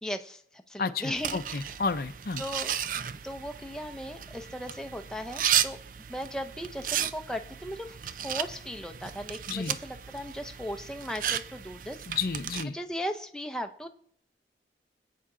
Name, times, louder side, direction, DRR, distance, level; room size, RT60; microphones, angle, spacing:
voice 1, 0.0-1.7 2.4-2.8 3.2-5.8 6.1-12.2 12.7-13.9, equal, 5° left, 4 dB, 0.6 m, -37 dB
voice 2, 0.8-2.4 9.5-9.8 12.1-12.8, left 4 dB, 55° left, 11 dB, 0.6 m, -31 dB
sound 1, 1.2-12.6, right 9 dB, 50° right, 0.4 m, -34 dB
24.0 x 8.4 x 3.8 m, 0.69 s
head